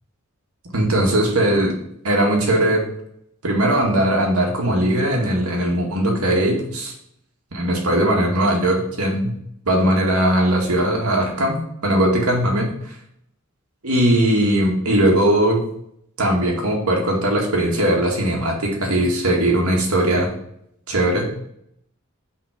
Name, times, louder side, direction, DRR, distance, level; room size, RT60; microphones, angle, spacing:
voice 1, 0.7-1.7 2.0-2.8 3.4-6.9 7.5-9.3 9.7-12.9 13.8-15.7 16.2-20.3 20.9-21.3, right 1 dB, 85° right, 0 dB, 2.1 m, -19 dB
6.1 x 5.0 x 5.1 m, 0.72 s
head